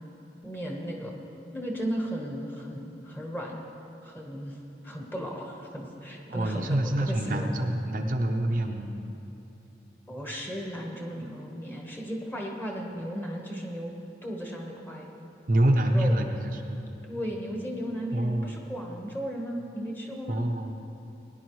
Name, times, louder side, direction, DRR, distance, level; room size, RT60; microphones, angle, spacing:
voice 1, 0.4-1.1 1.5-3.6 4.0-4.6 4.8-7.7 10.1-13.9 14.2-15.1 15.8-16.2 17.1-20.4, equal, 10° left, -1 dB, 1.2 m, -35 dB
voice 2, 6.3-8.9 15.5-16.8 18.1-18.5 20.3-20.7, right 1 dB, 50° right, 3 dB, 0.6 m, -26 dB
18.5 x 10.5 x 3.1 m, 2.9 s
head